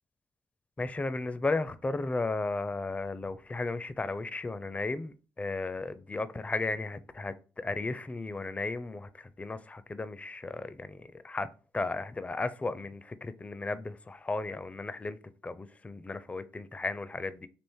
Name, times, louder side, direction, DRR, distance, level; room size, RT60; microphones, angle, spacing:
voice 1, 0.8-11.5 11.7-15.2 15.4-17.5, left 3 dB, 20° left, 0.4 m, -35 dB
3.5 x 2.5 x 4.4 m
supercardioid pair, 50°, 7 cm